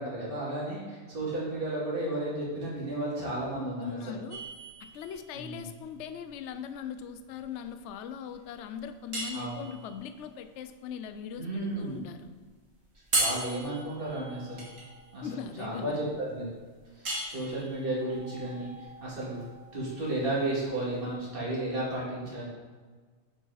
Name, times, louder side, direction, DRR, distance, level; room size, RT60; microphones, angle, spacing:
voice 1, 0.0-4.1 5.3-5.7 9.3-9.6 11.4-12.0 13.2-14.6 15.1-16.4 16.9-19.5 19.7-22.4, right 1 dB, 40° right, -7 dB, 2.6 m, -33 dB
voice 2, 3.8-4.4 4.8-12.3 13.2-13.4 15.2-16.0, left 7 dB, 70° left, 10 dB, 0.8 m, -40 dB
sound 1, 4.3-21.1, right 2 dB, 75° right, 2.1 m, -38 dB
8.6 x 4.9 x 4.1 m, 1.5 s
omnidirectional pair, 1.4 m